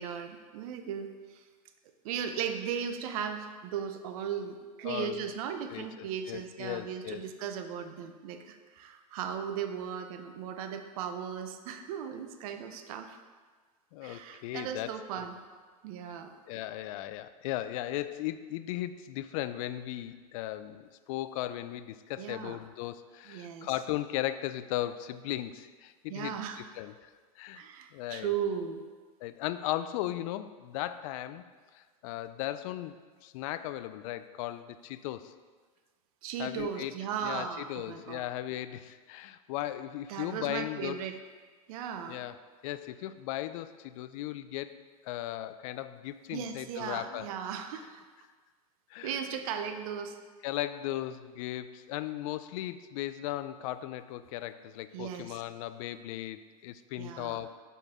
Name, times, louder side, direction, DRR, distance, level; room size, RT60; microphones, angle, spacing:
voice 1, 0.0-1.4 2.0-13.2 14.0-15.3 15.8-16.6 22.2-22.6 23.3-23.7 26.1-26.6 27.6-28.8 36.2-38.2 40.1-41.2 41.7-42.2 46.3-48.0 49.0-50.2 54.9-55.4 57.0-57.4, right 8 dB, 65° right, 7 dB, 0.7 m, -37 dB
voice 2, 4.8-5.3 5.7-7.2 13.9-14.9 15.2-15.3 16.5-26.9 27.4-27.6 27.9-28.3 29.2-31.5 31.7-35.3 36.4-36.9 37.2-41.0 42.1-42.4 42.6-44.8 45.0-47.3 48.9-49.2 50.4-57.5, left 14 dB, 60° left, 13 dB, 0.4 m, -37 dB
5.8 x 5.4 x 3.6 m, 1.5 s
hypercardioid pair, 110°, 19 cm